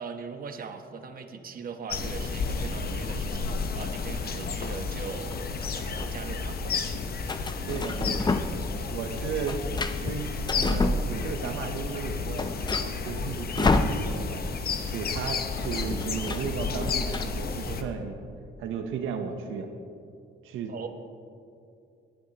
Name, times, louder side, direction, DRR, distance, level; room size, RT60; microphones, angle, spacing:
voice 1, 0.0-5.3 5.7-6.7 20.7-20.9, right 5 dB, 45° right, 6 dB, 1.1 m, -40 dB
sound 1, 1.9-17.8, left 4 dB, 50° left, 1.0 m, -32 dB
sound 2, 5.3-6.1 7.3-8.7 9.0-11.5 11.9-12.0 12.2-14.5 14.7-14.9 15.2-17.2, left 3 dB, 20° left, 0.7 m, -30 dB
voice 2, 7.7-8.4 8.9-9.7 9.9-14.5 14.9-18.2 18.6-19.7 20.4-20.7, right 6 dB, 90° right, 5 dB, 0.9 m, -35 dB
18.5 x 11.5 x 3.0 m, 2.5 s
cardioid pair, 90°, 20 cm